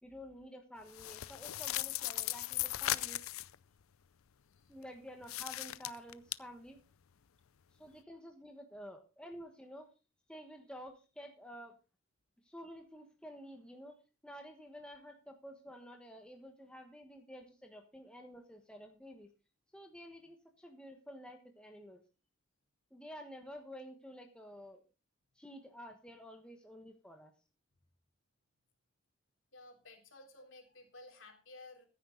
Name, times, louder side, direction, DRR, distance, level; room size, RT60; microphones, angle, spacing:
voice 1, 0.0-3.2 4.7-6.8 7.7-9.9 10.3-11.8 12.4-19.3 19.7-22.0 22.9-24.8 25.3-27.3, equal, 5° left, 3 dB, 1.3 m, -51 dB
sound 1, 0.9-3.5 5.2-6.3, left 15 dB, 90° left, 0.5 m, -37 dB
voice 2, 29.5-31.9, left 2 dB, 70° left, 3 dB, 3.5 m, -55 dB
15.0 x 9.2 x 3.9 m, 0.31 s
head